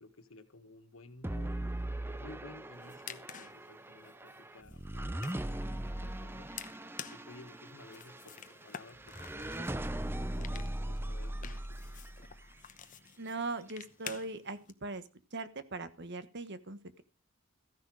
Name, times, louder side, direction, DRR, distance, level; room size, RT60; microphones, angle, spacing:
voice 1, 0.0-1.7 2.2-6.5 7.1-12.0, left 2 dB, 85° left, 7 dB, 1.7 m, -55 dB
sound 1, 1.2-12.5, right 1 dB, 10° right, 0.6 m, -39 dB
sound 2, 2.7-14.7, left 8 dB, 40° left, 0.9 m, -51 dB
voice 2, 13.2-15.0 15.3-17.0, right 3 dB, 55° right, 12 dB, 1.3 m, -40 dB
14.5 x 10.5 x 4.8 m, 0.32 s
head